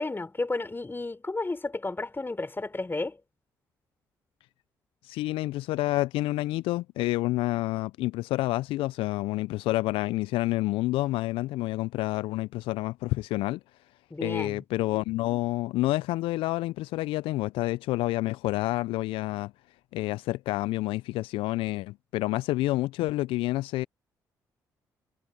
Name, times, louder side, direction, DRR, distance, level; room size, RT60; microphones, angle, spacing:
voice 1, 0.0-3.2 14.1-14.6, left 2 dB, 25° left, 3.8 m, -32 dB
voice 2, 5.0-13.6 14.2-19.5 19.9-23.9, left 18 dB, 70° left, 0.4 m, -28 dB
hypercardioid pair, 45°, 9 cm